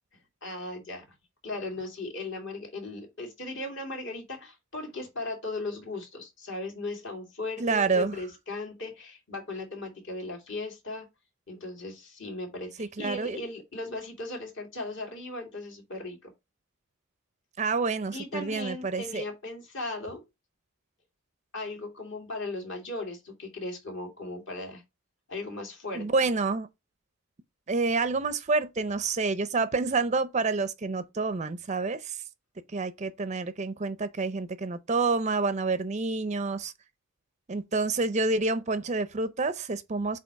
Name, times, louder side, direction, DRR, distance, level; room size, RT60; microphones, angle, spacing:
voice 1, 0.4-1.1 1.4-11.1 11.5-16.3 18.1-20.2 21.5-24.8 25.3-26.1, left 2 dB, 60° left, 2.3 m, -37 dB
voice 2, 7.6-8.2 12.8-13.4 17.6-19.2 25.9-26.7 27.7-32.2 32.7-36.7 37.5-40.2, right 3 dB, 30° right, 0.5 m, -28 dB
7.9 x 2.9 x 4.6 m
head